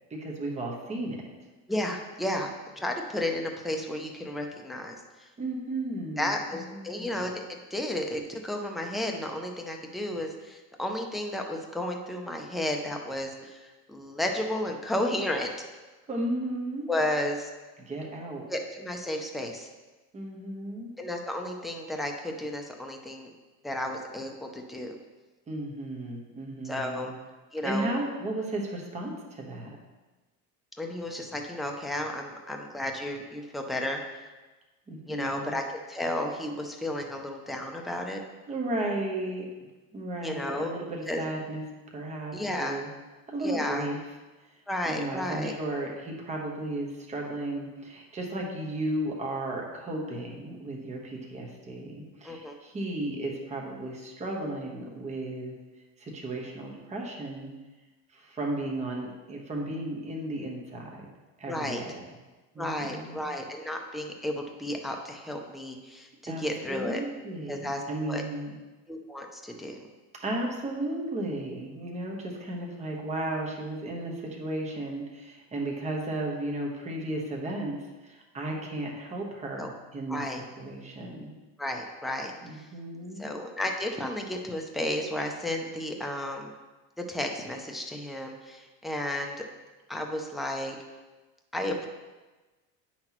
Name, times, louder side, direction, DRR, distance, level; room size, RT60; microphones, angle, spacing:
voice 1, 0.1-1.2 5.4-7.1 16.1-16.9 17.8-18.4 20.1-20.9 25.5-27.1 27.6-29.8 34.9-35.6 38.5-39.5 39.9-41.6 41.9-42.3 42.6-42.9 43.3-44.0 44.8-55.5 56.0-57.5 58.1-61.0 61.4-62.0 62.5-63.3 66.3-68.5 70.2-77.8 78.0-80.2 80.6-81.3 82.4-83.3, right 1 dB, 15° right, -1 dB, 1.1 m, -34 dB
voice 2, 1.7-5.0 6.2-15.5 16.9-17.5 18.5-19.7 21.0-23.3 23.6-25.0 26.6-27.1 27.5-28.0 30.8-34.3 35.1-38.2 40.2-40.7 41.1-41.2 42.3-42.8 43.4-43.9 44.7-45.5 52.2-52.6 61.5-61.8 62.6-67.0 67.5-68.2 68.9-69.9 79.6-79.7 80.1-80.4 81.6-82.7 83.2-86.5 87.0-89.4 89.9-90.7 91.5-91.9, left 1 dB, ahead, 2 dB, 0.3 m, -33 dB
8.6 x 5.9 x 3.0 m, 1.2 s
cardioid pair, 150°, 39 cm